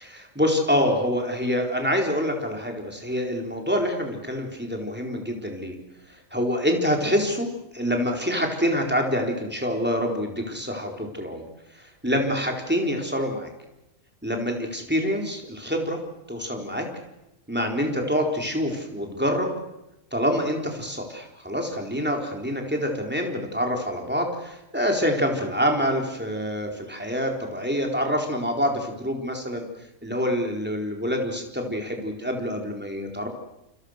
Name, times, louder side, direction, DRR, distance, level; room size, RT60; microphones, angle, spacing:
voice 1, 0.3-5.8 6.3-7.5 7.7-11.4 12.0-13.5 14.2-16.0 16.3-16.8 17.5-19.5 20.1-29.7 30.0-33.3, equal, 10° right, 2 dB, 4.1 m, -26 dB
28.5 x 26.5 x 6.6 m, 0.90 s
omnidirectional pair, 1.3 m